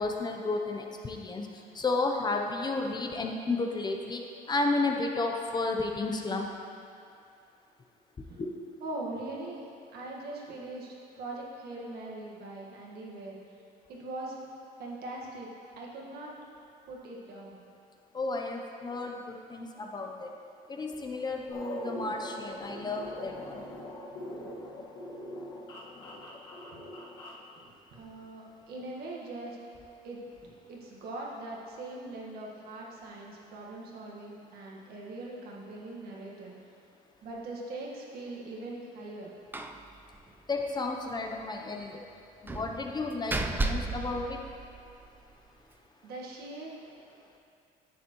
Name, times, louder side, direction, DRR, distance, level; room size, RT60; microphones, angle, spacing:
voice 1, 0.0-1.5 1.8-4.2 4.5-6.5 8.4-8.5 18.1-20.3 20.7-23.6 40.5-42.0 42.4-44.4, left 3 dB, 25° left, 2 dB, 0.6 m, -32 dB
voice 2, 8.8-13.4 13.9-14.4 14.8-15.5 15.8-16.3 16.9-17.6 27.5-29.6 30.0-36.5 37.2-39.3 46.0-46.7, right 2 dB, 70° right, -3 dB, 1.5 m, -41 dB
sound 1, 21.5-27.4, left 1 dB, 90° left, 1.6 m, -42 dB
Slam, 39.5-39.8 40.1-40.2 40.6-40.7 42.5-45.1, right 2 dB, 10° right, 0.4 m, -34 dB
9.9 x 6.9 x 3.0 m, 2.5 s
cardioid pair, 110°, 17 cm